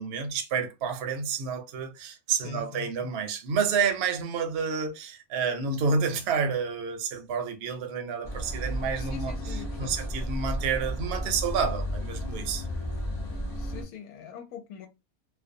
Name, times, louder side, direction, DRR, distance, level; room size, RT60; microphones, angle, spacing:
voice 1, 0.0-12.7, right 5 dB, 60° right, 0.7 m, -29 dB
voice 2, 2.4-3.1 9.0-10.0 13.5-14.9, left 5 dB, 90° left, 1.1 m, -42 dB
sound 1, 8.2-13.8, equal, 40° left, 0.3 m, -33 dB
2.5 x 2.1 x 2.6 m
omnidirectional pair, 1.5 m